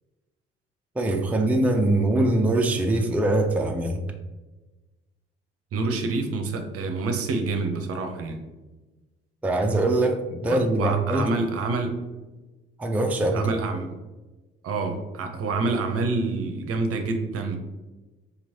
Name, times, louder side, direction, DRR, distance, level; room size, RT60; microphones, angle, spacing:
voice 1, 1.0-4.0 9.4-11.3 12.8-13.5, right 2 dB, 5° right, 3 dB, 0.5 m, -23 dB
voice 2, 5.7-8.4 10.5-12.0 13.3-13.9 14.6-17.6, right 3 dB, 50° right, 5 dB, 0.7 m, -27 dB
4.1 x 3.0 x 2.7 m, 1.2 s
hypercardioid pair, 50°, 30 cm